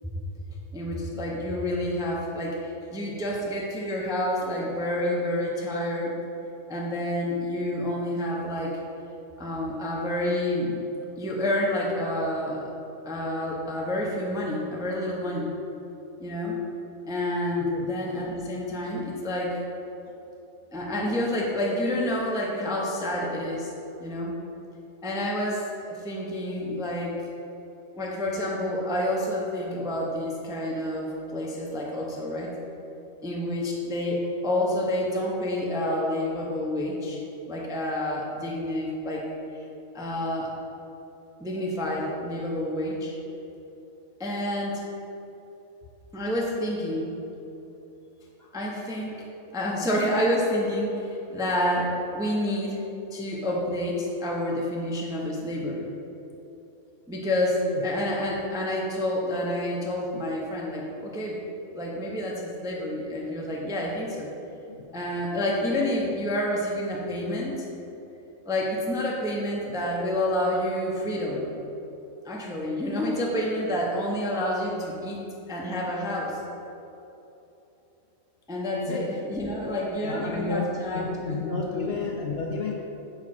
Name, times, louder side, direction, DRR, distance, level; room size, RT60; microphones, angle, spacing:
voice 1, 0.7-6.1 6.7-8.8 9.4-10.8 11.2-12.7 13.0-15.5 16.2-16.6 17.1-19.6 20.7-23.7 24.0-24.4 25.0-27.3 27.9-32.5 33.2-39.2 39.9-40.5 41.4-43.1 44.2-44.8 46.1-47.2 48.5-49.2 49.5-52.8 53.1-55.9 57.1-61.4 61.7-64.3 64.9-67.5 68.4-71.4 72.2-75.2 75.5-76.4 78.5-81.4 81.7-81.9, left 1 dB, 5° right, -3 dB, 0.4 m, -28 dB
voice 2, 80.0-82.7, left 4 dB, 60° left, -1 dB, 0.7 m, -31 dB
4.8 x 4.7 x 5.8 m, 3.0 s
omnidirectional pair, 1.5 m